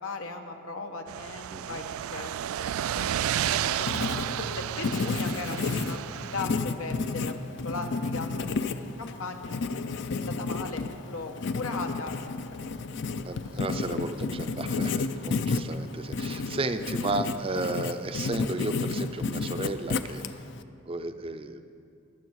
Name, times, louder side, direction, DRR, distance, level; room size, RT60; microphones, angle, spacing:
voice 1, 0.0-3.9 4.4-7.3 7.6-9.5 10.3-12.9 13.2-13.4, left 3 dB, 90° left, 5 dB, 1.1 m, -38 dB
sound 1, 1.1-6.4, right 10 dB, 90° right, 0.3 m, -31 dB
voice 2, 1.5-1.8 13.3-20.2 20.9-21.6, right 2 dB, 25° right, 9 dB, 0.5 m, -33 dB
Writing, 3.5-20.6, left 4 dB, 55° left, 0.4 m, -32 dB
21.5 x 7.4 x 4.7 m, 2.4 s
head